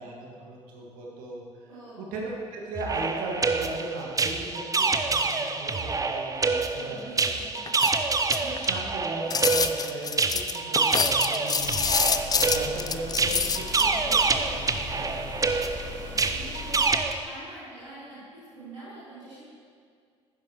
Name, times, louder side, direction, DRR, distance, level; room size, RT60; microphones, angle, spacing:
voice 1, 0.0-1.4 2.0-7.3 8.4-11.7 12.3-14.7 14.9-15.4, right 2 dB, 65° right, -2 dB, 1.8 m, -37 dB
voice 2, 1.7-2.1 6.8-7.6 16.0-19.4, right 1 dB, 85° right, -11 dB, 2.0 m, -45 dB
sound 1, 2.7-17.1, right 4 dB, 20° right, 0.6 m, -27 dB
sound 2, 7.7-8.8 9.3-13.8, left 6 dB, 25° left, 0.5 m, -27 dB
sound 3, 11.6-16.9, left 3 dB, 90° left, 1.3 m, -40 dB
11.0 x 9.8 x 3.0 m, 2.1 s
figure-of-eight pair, 50°, 16 cm